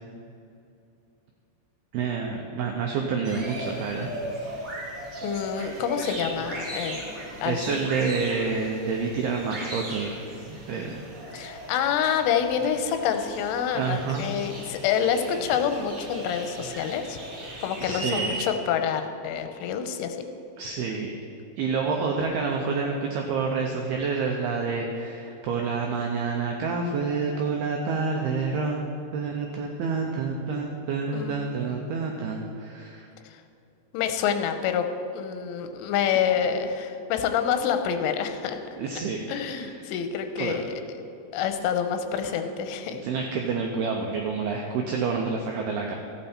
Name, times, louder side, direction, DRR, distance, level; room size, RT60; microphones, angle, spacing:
voice 1, 1.9-4.1 6.8-7.1 7.5-10.1 10.7-11.0 13.7-14.3 17.8-18.4 20.6-21.1 21.6-28.8 29.1-33.1 38.8-39.2 39.6-39.7 40.4-40.6 42.2-42.3 42.9-46.0, right 5 dB, 90° right, 1 dB, 2.2 m, -28 dB
sound 1, 3.2-18.4, right 1 dB, 30° right, 2.8 m, -38 dB
voice 2, 5.2-7.9 11.3-17.2 17.6-20.3 31.1-31.3 31.7-31.8 33.3-33.4 33.9-34.9 35.1-38.6 39.3-40.8 41.3-43.0, left 8 dB, 90° left, 7 dB, 3.3 m, -27 dB
14.5 x 8.9 x 4.3 m, 2.7 s
omnidirectional pair, 5.5 m